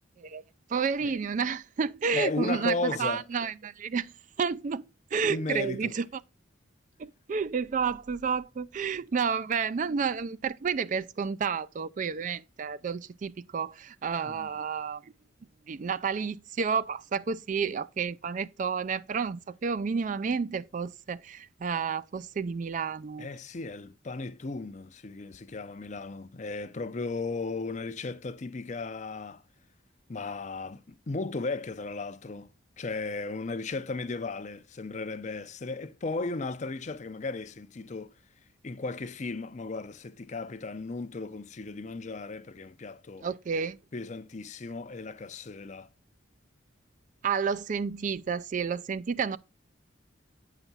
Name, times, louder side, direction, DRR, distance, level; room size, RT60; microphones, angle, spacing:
voice 1, 0.7-4.1 4.4-4.8 5.1-6.2 7.0-15.1 15.7-23.3 43.2-43.8 47.2-49.4, right 6 dB, 40° right, 0.4 m, -30 dB
voice 2, 2.1-3.2 5.2-6.0 14.2-14.5 23.2-29.4 30.1-32.5 32.8-38.1 38.6-43.3 43.9-45.9, left 3 dB, 40° left, 0.5 m, -35 dB
8.9 x 5.8 x 4.0 m
head